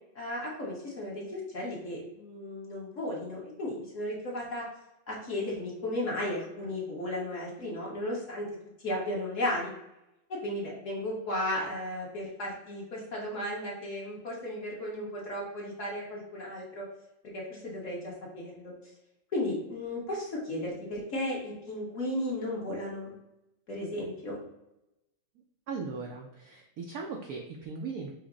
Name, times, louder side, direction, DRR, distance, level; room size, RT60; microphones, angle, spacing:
voice 1, 0.1-4.7 5.1-8.4 8.8-9.7 10.3-16.8 17.3-18.7 19.3-23.1 23.7-24.4, left 1 dB, 45° left, -3 dB, 1.2 m, -35 dB
voice 2, 25.7-28.1, right 4 dB, 80° right, 1 dB, 0.8 m, -38 dB
5.9 x 2.1 x 3.8 m, 0.89 s
omnidirectional pair, 2.2 m